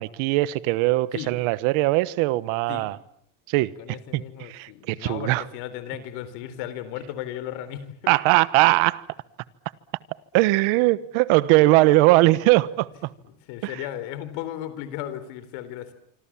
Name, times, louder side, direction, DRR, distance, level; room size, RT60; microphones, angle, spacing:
voice 1, 0.0-3.0 3.5-3.7 4.1-5.4 8.1-9.0 10.3-13.1 13.6-13.7, right 19 dB, 90° right, 1.3 m, -20 dB
voice 2, 3.8-8.1 10.8-10.9 13.2-15.9, left 11 dB, 90° left, 3.9 m, -35 dB
26.0 x 25.5 x 7.4 m
cardioid pair, 155°, 47 cm